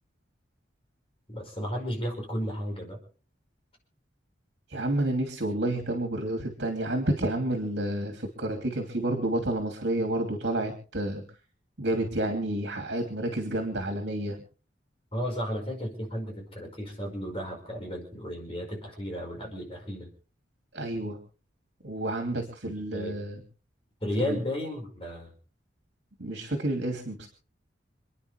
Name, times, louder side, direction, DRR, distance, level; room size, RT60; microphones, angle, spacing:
voice 1, 1.3-3.0 15.1-20.1 22.3-23.2 24.0-25.3, equal, 30° left, 1 dB, 5.4 m, -34 dB
voice 2, 4.7-11.2 11.8-14.4 20.7-21.2 21.8-23.4 24.2-24.4 26.2-27.3, right 1 dB, 70° right, 3 dB, 2.9 m, -30 dB
28.5 x 10.0 x 3.5 m, 0.40 s
head